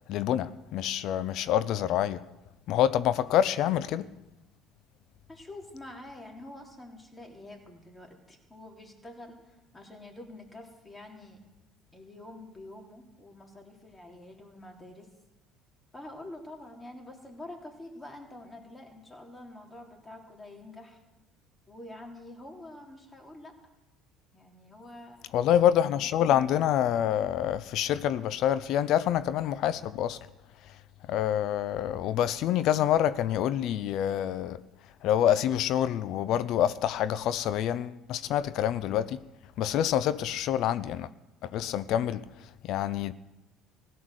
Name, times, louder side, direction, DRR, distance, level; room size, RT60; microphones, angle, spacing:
voice 1, 0.1-2.2 2.7-4.1 25.3-30.2 31.1-34.6 35.0-39.2 39.6-41.1 41.4-42.3 42.6-43.1, left 10 dB, 65° left, 0.6 m, -27 dB
voice 2, 5.3-11.4 11.9-15.1 15.9-21.0 21.7-23.7 24.3-25.3, left 1 dB, 20° left, 3.5 m, -47 dB
16.0 x 10.5 x 6.5 m
hypercardioid pair, 70°, 0 cm